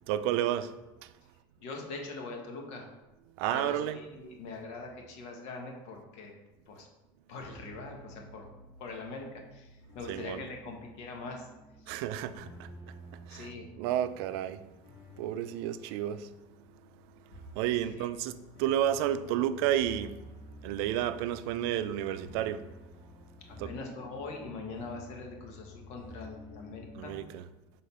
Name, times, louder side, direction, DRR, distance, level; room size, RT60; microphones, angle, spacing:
voice 1, 0.1-0.7 1.0-1.1 3.4-4.0 10.1-10.4 11.9-13.5 13.8-14.6 15.2-16.3 16.9-20.2 20.6-22.7 23.6-23.7 27.0-27.4, right 11 dB, 75° right, 0.5 m, -32 dB
voice 2, 1.6-2.9 3.5-6.3 6.7-6.9 7.3-8.4 8.8-11.5 11.8-11.9 13.3-13.7 17.8-18.1 23.5-27.1, left 3 dB, 55° left, 1.3 m, -42 dB
sound 1, 7.4-27.2, left 1 dB, 75° left, 2.1 m, -51 dB
6.6 x 3.8 x 5.4 m
cardioid pair, 165°, 13 cm